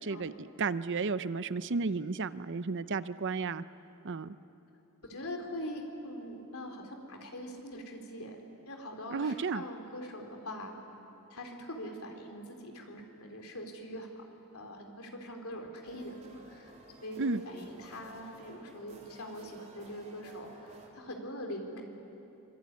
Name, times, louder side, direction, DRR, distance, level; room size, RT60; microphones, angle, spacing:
voice 1, 0.0-3.6 4.0-4.3 9.1-9.6 17.2-17.4, right 4 dB, 55° right, 14 dB, 0.7 m, -33 dB
voice 2, 5.0-10.7 11.3-14.2 14.5-16.7 17.0-21.8, equal, 70° left, 3 dB, 3.8 m, -43 dB
sound 1, 15.8-20.9, right 1 dB, 35° right, 3.6 m, -54 dB
25.5 x 24.0 x 9.6 m, 3.0 s
head